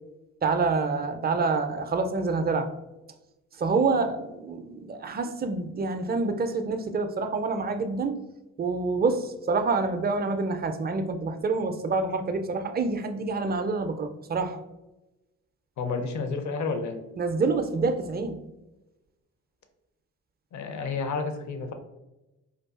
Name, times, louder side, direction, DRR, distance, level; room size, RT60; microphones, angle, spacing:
voice 1, 0.4-2.7 3.5-8.2 8.6-14.6 17.2-18.4, right 4 dB, 25° right, 7 dB, 0.4 m, -27 dB
voice 2, 15.8-17.0 20.5-21.7, left 4 dB, 50° left, 7 dB, 0.6 m, -30 dB
3.8 x 2.4 x 2.3 m, 1.0 s
hypercardioid pair, 45°, 38 cm